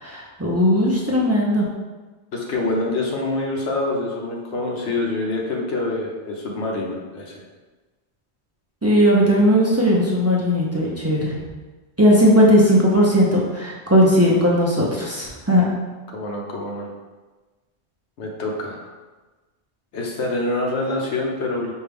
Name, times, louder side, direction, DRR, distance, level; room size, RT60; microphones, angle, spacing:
voice 1, 0.0-1.7 8.8-11.3 12.0-15.7, equal, 20° right, -5 dB, 0.4 m, -17 dB
voice 2, 2.3-7.3 16.1-16.9 18.2-18.9 19.9-21.7, left 2 dB, 80° left, -1 dB, 1.1 m, -26 dB
5.3 x 2.3 x 3.4 m, 1.2 s
omnidirectional pair, 1.1 m